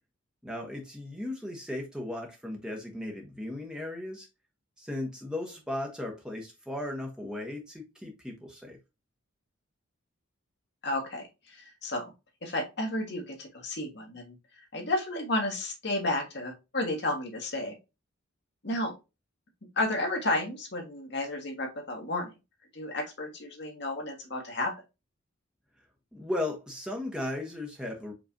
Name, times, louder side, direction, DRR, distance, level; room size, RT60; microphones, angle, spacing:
voice 1, 0.4-4.3 4.8-8.8 26.1-28.1, left 1 dB, 5° right, 1.0 m, -36 dB
voice 2, 10.8-12.0 12.4-14.3 14.7-17.7 18.6-18.9 19.8-22.3 22.7-24.7, left 1 dB, 50° left, 1.4 m, -32 dB
5.0 x 3.2 x 2.6 m
head